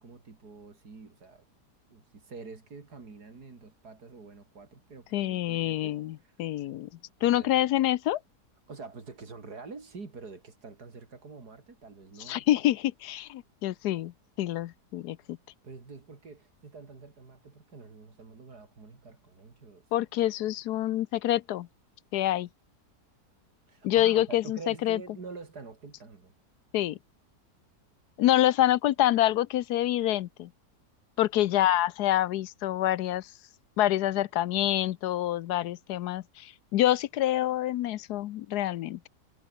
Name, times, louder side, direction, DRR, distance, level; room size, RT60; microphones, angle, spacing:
voice 1, 0.0-1.5 1.9-6.3 7.2-7.6 8.7-12.5 15.6-19.8 23.7-26.3, right 4 dB, 70° right, 3.7 m, -46 dB
voice 2, 5.1-6.9 7.2-8.2 12.2-14.1 14.4-15.4 19.9-21.7 22.1-22.5 23.8-25.0 26.7-27.0 28.2-30.5 31.2-33.3 33.8-39.0, left 13 dB, 75° left, 1.2 m, -26 dB
omnidirectional pair, 1.8 m